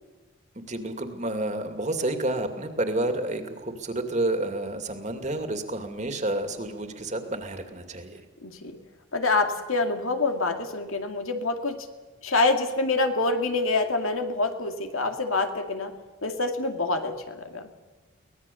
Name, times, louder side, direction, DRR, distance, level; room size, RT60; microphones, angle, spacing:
voice 1, 0.6-8.2, right 1 dB, 35° right, 6 dB, 2.5 m, -30 dB
voice 2, 8.4-8.8 9.1-11.8 12.2-15.9 16.2-17.7, left 3 dB, 80° left, 6 dB, 2.4 m, -26 dB
24.0 x 19.0 x 7.1 m, 1.2 s
head